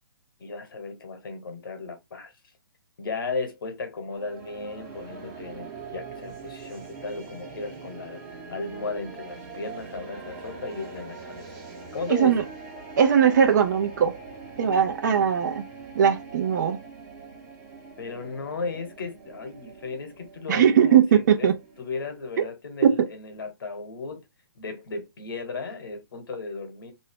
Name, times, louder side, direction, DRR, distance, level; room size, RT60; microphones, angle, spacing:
voice 1, 0.4-2.3 3.0-11.5 11.9-12.4 18.0-21.5 21.8-24.2 24.5-26.9, left 4 dB, 70° left, 1.1 m, -35 dB
sound 1, 4.1-22.3, right 4 dB, 35° right, 1.2 m, -43 dB
voice 2, 12.1-12.4 13.0-14.1 14.6-15.6 15.9-16.8 20.5-21.5 22.8-23.0, right 8 dB, 50° right, 0.7 m, -19 dB
2.7 x 2.3 x 3.4 m
hypercardioid pair, 135°, 12 cm